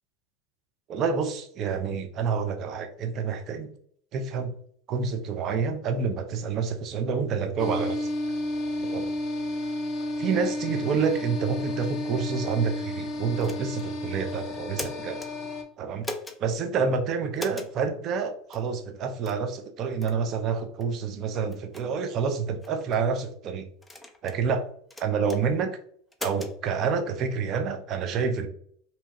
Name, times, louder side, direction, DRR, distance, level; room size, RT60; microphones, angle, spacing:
voice 1, 0.9-3.7 4.1-4.5 4.9-8.1 8.8-9.1 10.2-15.2 15.8-16.0 16.4-23.7 24.2-24.6 25.0-25.8 26.2-28.5, right 5 dB, 45° right, 7 dB, 0.5 m, -28 dB
sound 1, 7.6-15.6, left 1 dB, 50° left, 0.7 m, -32 dB
sound 2, 13.4-13.9 14.5-15.3 16.0-16.4 17.4-17.7 18.5-18.7 19.2-19.5 20.0-20.2 20.8-20.9 21.5-21.8 22.6-23.0 23.8-24.4 24.9-25.4 26.1-26.5, left 1 dB, 10° left, 0.5 m, -38 dB
2.8 x 2.2 x 2.9 m, 0.62 s
hypercardioid pair, 85°, 0 cm